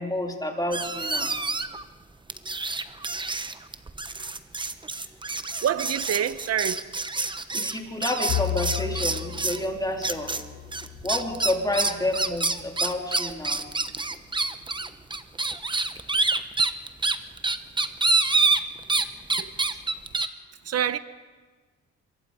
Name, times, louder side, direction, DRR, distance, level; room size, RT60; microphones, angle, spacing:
voice 1, 0.0-1.4 7.5-10.3 11.0-13.6 19.7-19.8, left 1 dB, 15° left, 3.7 m, -29 dB
sound 1, 0.7-1.8 2.3-9.7 10.0-10.4 10.7-19.1 19.3-20.3, right 3 dB, 15° right, 0.9 m, -27 dB
voice 2, 5.6-6.9 19.4-19.5 20.6-21.0, right 9 dB, 55° right, 1.0 m, -26 dB
Bowed string instrument, 8.3-12.7, left 17 dB, 80° left, 0.8 m, -35 dB
26.5 x 22.5 x 5.0 m
cardioid pair, 90°, 30 cm